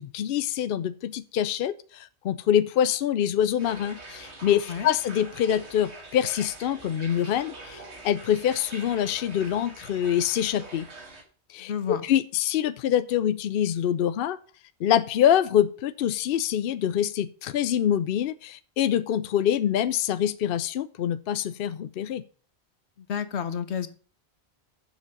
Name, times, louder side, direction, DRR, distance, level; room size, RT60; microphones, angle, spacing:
voice 1, 0.0-10.9 11.5-14.4 14.8-22.2, left 10 dB, 65° left, 11 dB, 0.7 m, -25 dB
sound 1, 3.6-11.2, right 3 dB, 80° right, 1.9 m, -44 dB
voice 2, 11.6-12.0 23.1-23.9, left 7 dB, 80° left, 11 dB, 1.2 m, -30 dB
7.3 x 6.3 x 6.3 m, 0.41 s
omnidirectional pair, 1.1 m